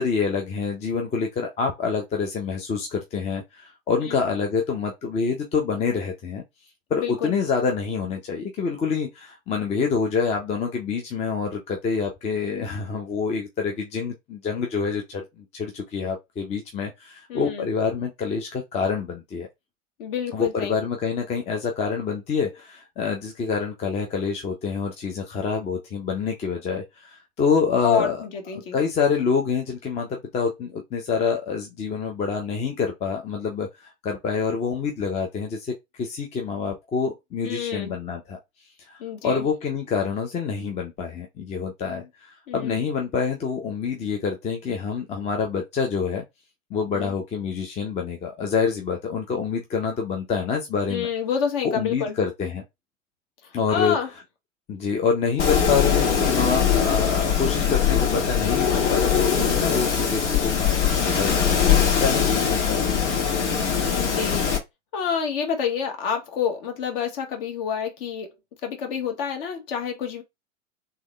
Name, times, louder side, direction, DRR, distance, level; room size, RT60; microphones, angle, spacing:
voice 1, 0.0-6.4 6.9-19.5 20.3-28.2 28.7-38.4 38.8-39.0 39.2-46.2 46.7-51.1 51.7-52.6 53.5-54.0 54.7-63.2, left 5 dB, 15° left, 0.7 m, -27 dB
voice 2, 6.9-7.3 17.3-17.7 20.0-20.8 27.8-28.8 37.4-37.9 39.0-39.5 41.9-42.0 42.5-42.8 46.9-47.1 50.9-52.2 53.4-54.1 63.9-64.5 64.9-68.3 68.6-70.2, left 7 dB, 45° left, 1.6 m, -28 dB
Wind, 55.4-64.6, left 7 dB, 65° left, 1.7 m, -22 dB
3.6 x 3.3 x 3.2 m
figure-of-eight pair, 95°, 39 cm